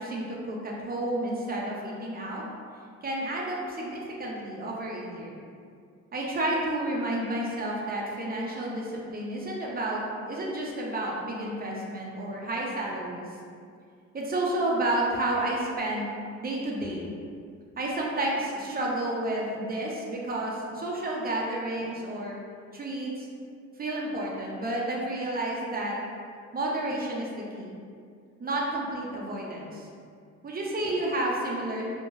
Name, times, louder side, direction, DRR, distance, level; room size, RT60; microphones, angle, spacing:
voice 1, 0.0-2.4 3.0-5.4 6.1-13.3 14.1-16.1 16.4-17.1 17.8-22.4 22.7-23.3 23.8-26.0 26.5-27.8 28.4-29.9 30.4-31.8, right 1 dB, 30° right, -3 dB, 0.6 m, -31 dB
3.0 x 2.2 x 2.6 m, 2.3 s
cardioid pair, 90°, 30 cm